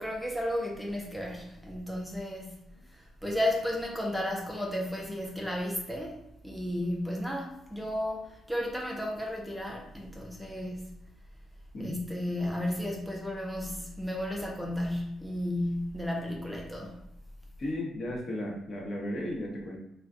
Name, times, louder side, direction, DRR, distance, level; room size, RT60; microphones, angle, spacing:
voice 1, 0.0-2.6 2.9-10.9 11.8-17.0, left 1 dB, ahead, 0.5 m, -33 dB
voice 2, 17.6-19.8, left 1 dB, 50° left, 0.8 m, -35 dB
2.4 x 2.2 x 3.6 m
cardioid pair, 90°, 0 cm